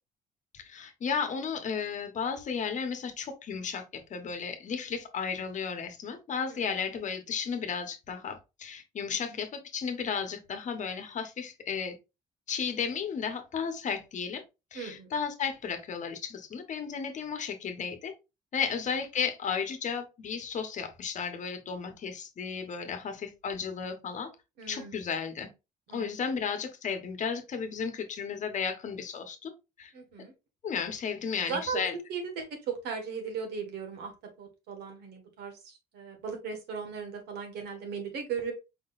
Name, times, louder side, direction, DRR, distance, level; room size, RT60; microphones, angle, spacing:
voice 1, 0.5-12.0 12.5-14.4 14.7-18.1 18.5-24.3 24.7-25.5 25.9-29.5 29.8-29.9 30.6-31.9, left 6 dB, 45° left, 1.1 m, -34 dB
voice 2, 14.7-15.1 18.6-18.7 24.6-25.0 25.9-26.2 29.9-30.3 31.5-34.1 34.4-38.5, right 6 dB, 75° right, 1.7 m, -37 dB
4.9 x 3.8 x 2.5 m
cardioid pair, 110°, 17 cm